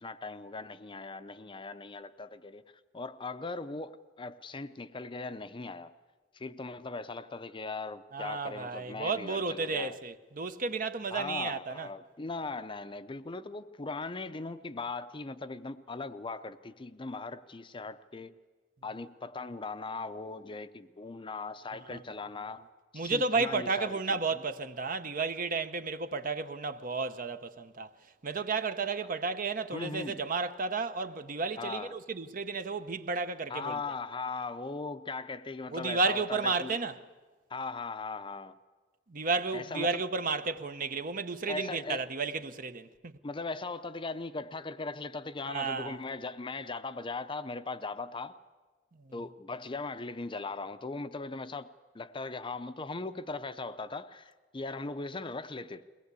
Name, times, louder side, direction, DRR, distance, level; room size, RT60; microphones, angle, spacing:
voice 1, 0.0-2.6 2.9-5.9 6.3-10.0 11.1-18.4 18.8-22.6 22.9-24.2 29.7-30.2 31.6-31.9 33.5-36.7 37.5-38.6 39.5-40.0 41.5-42.0 43.2-48.4 49.1-55.8, left 3 dB, 25° left, 0.6 m, -39 dB
voice 2, 8.1-11.9 21.9-22.0 22.9-27.9 28.2-33.8 35.7-37.0 39.1-43.1 45.5-46.0 49.0-49.1, right 4 dB, 50° right, 0.8 m, -32 dB
22.5 x 18.0 x 8.2 m
head